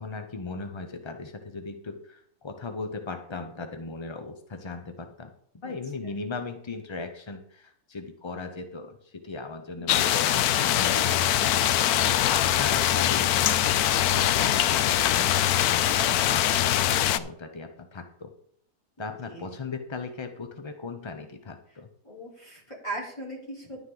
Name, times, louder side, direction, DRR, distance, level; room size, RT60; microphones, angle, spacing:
voice 1, 0.0-5.3 5.6-13.4 14.1-18.3 19.0-21.9, left 4 dB, 40° left, 6 dB, 0.4 m, -38 dB
sound 1, 9.9-17.2, left 12 dB, 80° left, 1.1 m, -23 dB
voice 2, 12.0-12.5 19.2-19.5 22.0-23.8, right 2 dB, 20° left, -4 dB, 4.0 m, -39 dB
11.0 x 9.2 x 3.9 m, 0.65 s
omnidirectional pair, 1.6 m